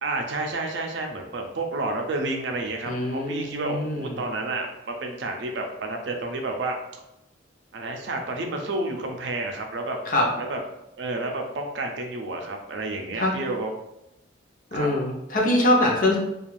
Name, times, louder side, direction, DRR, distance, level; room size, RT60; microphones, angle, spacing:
voice 1, 0.0-6.8 7.7-10.0 10.4-10.6 11.0-13.7 14.7-14.9, right 2 dB, 65° right, 2 dB, 0.5 m, -30 dB
voice 2, 2.9-4.2 10.1-10.3 13.2-13.3 14.7-16.2, left 1 dB, 45° left, -1 dB, 0.6 m, -23 dB
2.5 x 2.3 x 3.1 m, 0.89 s
head